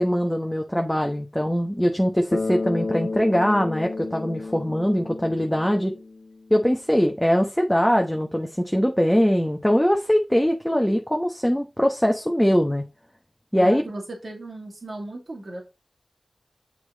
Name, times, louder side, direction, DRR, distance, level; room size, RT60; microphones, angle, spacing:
voice 1, 0.0-5.9 6.5-12.8 13.5-13.8, equal, 5° left, 1.1 m, -22 dB
Bass guitar, 2.3-6.5, left 3 dB, 60° left, 0.9 m, -32 dB
voice 2, 13.6-15.6, right 2 dB, 75° right, 2.4 m, -36 dB
7.1 x 5.0 x 4.1 m
cardioid pair, 45°, 0 cm